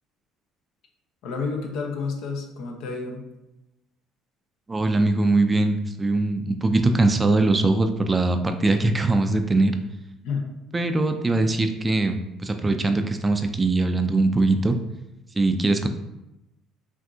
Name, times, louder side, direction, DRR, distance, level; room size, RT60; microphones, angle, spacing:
voice 1, 1.2-3.2 10.2-10.5 10.8-11.1, left 4 dB, 75° left, 2 dB, 0.8 m, -30 dB
voice 2, 4.7-9.7 10.7-14.8 15.4-15.9, right 2 dB, 20° right, 7 dB, 0.4 m, -21 dB
5.8 x 2.6 x 2.7 m, 0.94 s
cardioid pair, 110°, 0 cm